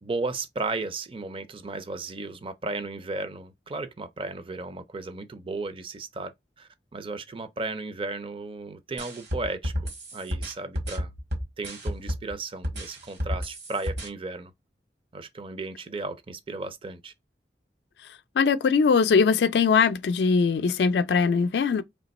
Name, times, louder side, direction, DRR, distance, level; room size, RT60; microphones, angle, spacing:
voice 1, 0.0-11.1 11.6-14.5 15.1-17.1, right 3 dB, 30° right, 0.4 m, -35 dB
sound 1, 9.0-12.3 12.6-14.1, equal, 75° right, 1.7 m, -31 dB
voice 2, 18.4-21.8, left 5 dB, 70° left, 0.3 m, -21 dB
3.2 x 2.9 x 4.1 m
head